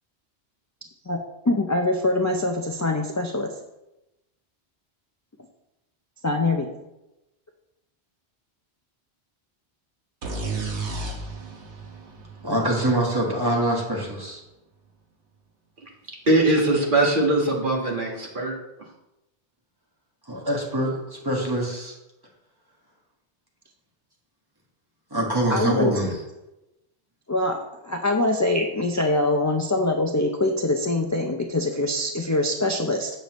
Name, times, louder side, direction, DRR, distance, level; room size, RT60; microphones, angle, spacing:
voice 1, 1.5-3.5 6.2-6.7 25.5-25.9 27.3-33.1, left 2 dB, 30° left, 2 dB, 0.3 m, -24 dB
sound 1, 10.2-13.9, right 3 dB, 90° right, 1.4 m, -33 dB
voice 2, 12.4-14.4 20.3-21.9 25.1-26.2, right 1 dB, 20° right, -2 dB, 1.5 m, -24 dB
voice 3, 16.3-18.5, right 2 dB, 50° right, -2 dB, 1.7 m, -21 dB
7.8 x 6.6 x 3.1 m, 0.95 s
omnidirectional pair, 1.1 m